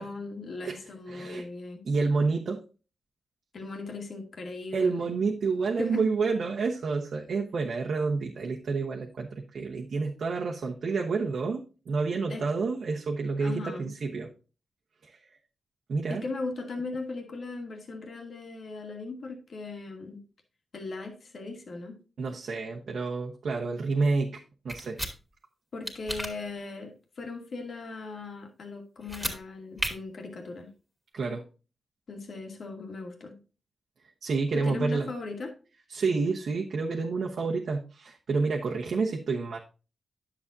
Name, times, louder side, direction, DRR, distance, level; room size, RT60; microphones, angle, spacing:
voice 1, 0.0-1.8 3.5-5.1 5.8-6.1 12.3-12.4 13.4-13.9 16.1-20.2 20.7-22.0 25.7-30.7 32.1-33.4 34.5-35.5, left 3 dB, 60° left, 3 dB, 2.2 m, -38 dB
voice 2, 1.1-1.4 1.8-2.6 4.7-14.3 15.0-15.2 15.9-16.2 22.2-25.0 31.1-31.4 34.2-35.1 35.9-39.6, right 4 dB, 70° right, -1 dB, 1.2 m, -29 dB
sound 1, 24.7-25.1 25.9-26.3 29.0-29.4 29.8-29.9, equal, ahead, 2.4 m, -32 dB
10.0 x 7.5 x 2.7 m, 0.33 s
cardioid pair, 80°, 0 cm